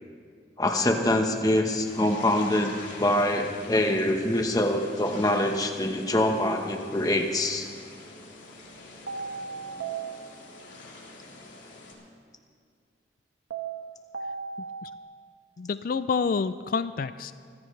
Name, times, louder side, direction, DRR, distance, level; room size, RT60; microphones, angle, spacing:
voice 1, 0.6-7.7, left 1 dB, 20° left, 4 dB, 1.1 m, -25 dB
sound 1, 1.9-11.9, left 2 dB, 85° left, 3.6 m, -46 dB
sound 2, 9.1-11.0 13.5-15.0, right 5 dB, 85° right, 1.4 m, -37 dB
voice 2, 15.6-17.3, left 5 dB, 50° left, 13 dB, 0.3 m, -28 dB
24.5 x 15.5 x 3.3 m, 2.1 s
head